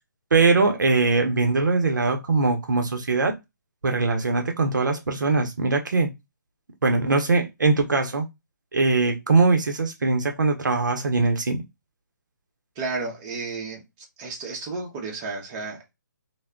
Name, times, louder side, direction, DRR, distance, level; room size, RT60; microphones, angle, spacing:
voice 1, 0.3-3.3 3.8-6.1 6.8-8.3 8.7-11.6, right 3 dB, 75° right, 0.6 m, -21 dB
voice 2, 12.8-13.8 14.2-16.0, right 3 dB, 25° right, 0.6 m, -32 dB
2.2 x 2.0 x 3.4 m
figure-of-eight pair, 145°, 10 cm